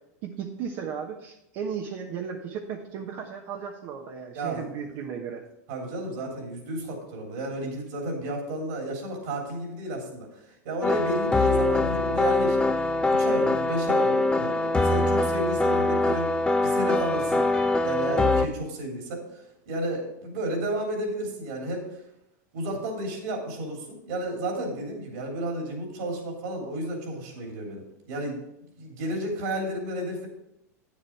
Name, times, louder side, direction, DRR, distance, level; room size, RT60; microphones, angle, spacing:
voice 1, 0.2-5.4, right 7 dB, 50° right, 1 dB, 1.1 m, -35 dB
voice 2, 4.3-5.0 5.7-12.6 13.0-16.3 16.6-17.5 17.8-21.9 22.5-28.4 28.8-30.3, right 1 dB, 70° right, 1 dB, 3.2 m, -32 dB
sound 1, 10.8-18.5, left 2 dB, 10° left, 0.7 m, -23 dB
8.8 x 7.4 x 4.6 m, 0.81 s
hypercardioid pair, 105°, 9 cm